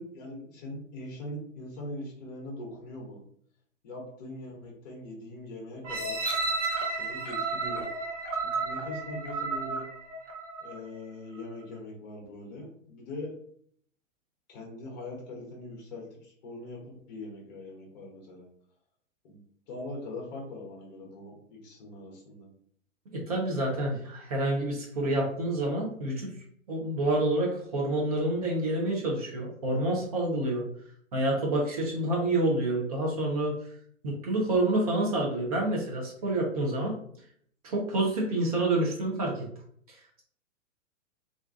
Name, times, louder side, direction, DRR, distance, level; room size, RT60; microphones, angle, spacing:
voice 1, 0.0-3.2 3.8-6.2 7.0-7.9 8.4-9.9 10.6-13.3 14.5-18.5 19.2-22.5, left 1 dB, 30° left, -1 dB, 0.7 m, -41 dB
sound 1, 5.8-10.8 11.4-11.5, right 3 dB, 65° right, 0.8 m, -32 dB
voice 2, 23.1-26.3 26.7-30.7 31.1-33.5 34.0-37.0 37.6-39.5 39.9-40.2, right 1 dB, 30° right, -2 dB, 0.5 m, -28 dB
2.5 x 2.2 x 2.4 m, 0.63 s
figure-of-eight pair, 115°, 40 cm